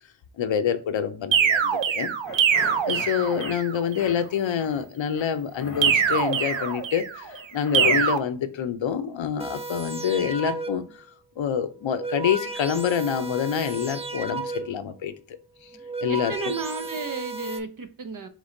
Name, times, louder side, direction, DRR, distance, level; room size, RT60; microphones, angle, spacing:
voice 1, 0.4-2.1 2.9-7.0 7.5-10.8 11.4-15.1 16.0-16.3, left 8 dB, 85° left, 0.6 m, -26 dB
sound 1, 1.3-3.7 5.8-7.2 7.7-8.2, right 7 dB, 90° right, 0.6 m, -23 dB
sound 2, 2.2-3.6 3.9-4.9 5.1-8.1, left 3 dB, 30° left, 0.9 m, -38 dB
sound 3, 9.4-11.0 11.7-14.9 15.6-17.6, right 3 dB, 15° right, 0.5 m, -34 dB
voice 2, 16.1-18.3, right 4 dB, 45° right, 0.7 m, -33 dB
3.6 x 3.2 x 3.7 m
wide cardioid pair, 70°, 44 cm